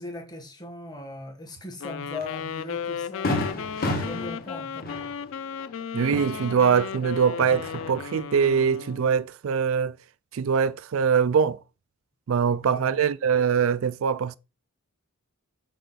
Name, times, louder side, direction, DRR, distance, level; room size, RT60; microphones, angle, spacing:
voice 1, 0.0-5.0 12.5-13.0, left 2 dB, 20° left, 1.3 m, -39 dB
Wind instrument woodwind instrument, 1.8-9.2, left 7 dB, 60° left, 0.4 m, -35 dB
Fireworks, 2.2-2.3 2.7-2.8 3.2-7.0 7.3-8.2, left 1 dB, 40° left, 1.6 m, -32 dB
voice 2, 5.9-10.0 10.3-11.6 12.3-14.4, right 7 dB, 65° right, 0.3 m, -23 dB
6.6 x 4.8 x 3.8 m
head